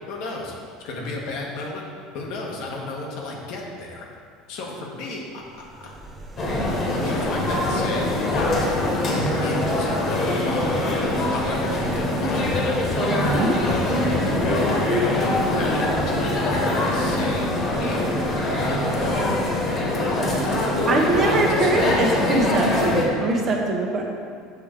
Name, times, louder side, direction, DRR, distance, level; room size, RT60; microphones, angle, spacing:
voice 1, 0.1-0.5 0.8-1.9 2.1-4.0 4.5-5.4 5.8-5.9 6.6-10.9 11.3-12.6 14.4-18.2 18.6-19.5 21.3-22.0, left 2 dB, 65° left, -1 dB, 1.2 m, -33 dB
sound 1, 5.4-20.1, right 2 dB, 20° right, 0.6 m, -39 dB
sound 2, 6.4-23.0, left 1 dB, 40° left, 1.5 m, -23 dB
voice 2, 13.1-13.5 20.9-24.0, right 2 dB, 40° right, 1 dB, 0.9 m, -23 dB
7.0 x 3.3 x 5.0 m, 2.3 s
supercardioid pair, 115°, 0 cm